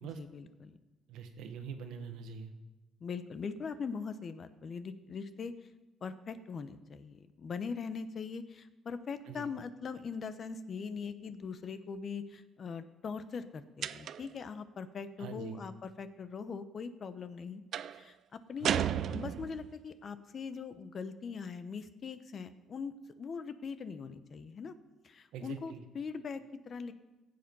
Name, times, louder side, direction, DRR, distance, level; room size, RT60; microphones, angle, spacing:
voice 1, 0.0-0.8 3.0-5.5 6.0-17.6 17.9-24.7 25.0-26.9, left 5 dB, 40° left, 12 dB, 0.8 m, -41 dB
voice 2, 1.1-2.5 9.3-9.5 15.2-15.6 18.6-19.0 25.3-25.8, right 6 dB, 85° right, 7 dB, 1.4 m, -44 dB
sound 1, 13.8-14.4 17.7-18.0 18.6-19.7, right 10 dB, 60° right, 0.4 m, -33 dB
15.5 x 7.8 x 5.5 m, 1.1 s
cardioid pair, 110°, 0 cm